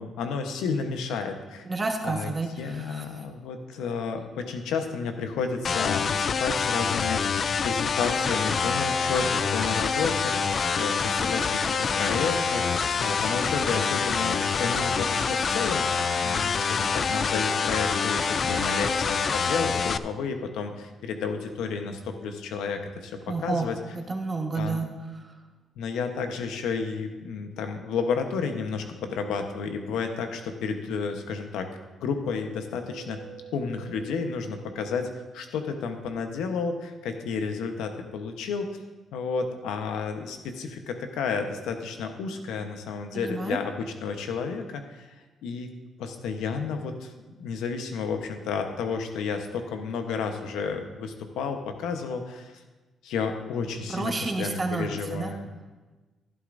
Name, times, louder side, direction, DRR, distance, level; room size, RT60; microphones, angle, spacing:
voice 1, 0.0-1.6 2.0-7.4 7.6-23.8 24.5-24.8 25.8-31.7 32.0-33.2 33.5-35.1 35.3-38.7 39.1-45.1 45.4-45.7 46.0-47.1 47.4-52.6 53.0-55.5, left 5 dB, 90° left, 6 dB, 1.0 m, -31 dB
voice 2, 1.6-3.0 23.3-25.3 43.1-43.6 53.9-55.3, right 3 dB, 30° right, 3 dB, 1.3 m, -30 dB
sound 1, 5.6-20.0, left 6 dB, 45° left, 0.3 m, -26 dB
sound 2, 7.9-19.6, left 2 dB, 70° left, 3.5 m, -37 dB
Mallet percussion, 32.9-36.7, right 9 dB, 70° right, 0.7 m, -49 dB
12.5 x 11.0 x 2.6 m, 1.2 s
cardioid pair, 90°, 0 cm